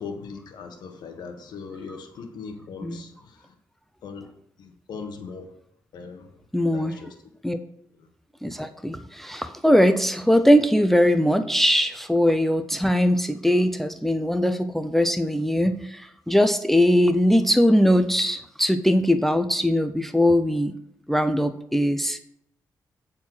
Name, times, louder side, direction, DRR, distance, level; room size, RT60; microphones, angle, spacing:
voice 1, 0.0-3.5 4.0-4.3 4.6-5.5 5.9-6.3 6.7-7.1 8.0-8.1, left 5 dB, 85° left, 5 dB, 1.3 m, -39 dB
voice 2, 6.5-7.0 7.4-7.6 8.4-20.7 21.1-22.2, equal, 5° left, 9 dB, 0.5 m, -21 dB
9.0 x 4.4 x 6.0 m, 0.72 s
cardioid pair, 95°, 7 cm